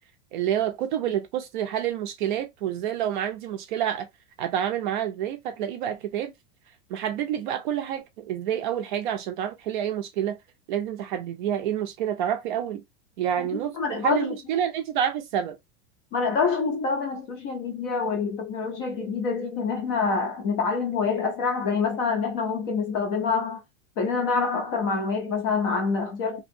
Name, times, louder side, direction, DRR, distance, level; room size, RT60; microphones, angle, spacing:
voice 1, 0.3-4.1 4.4-6.3 6.9-10.4 10.7-12.8 13.2-15.6, right 10 dB, 45° right, 0.5 m, -28 dB
voice 2, 13.4-14.4 16.1-23.6 24.0-26.4, left 5 dB, 25° left, 0.4 m, -26 dB
2.8 x 2.7 x 2.5 m
supercardioid pair, 170°, 36 cm